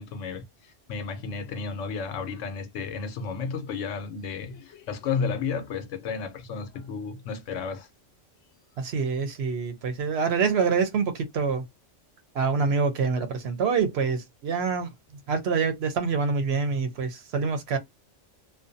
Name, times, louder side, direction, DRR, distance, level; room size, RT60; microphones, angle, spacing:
voice 1, 0.0-7.9, left 5 dB, 85° left, 1.0 m, -32 dB
voice 2, 8.8-11.6 12.3-14.9 15.3-17.8, right 5 dB, 65° right, 0.9 m, -26 dB
2.5 x 2.2 x 2.5 m
omnidirectional pair, 1.3 m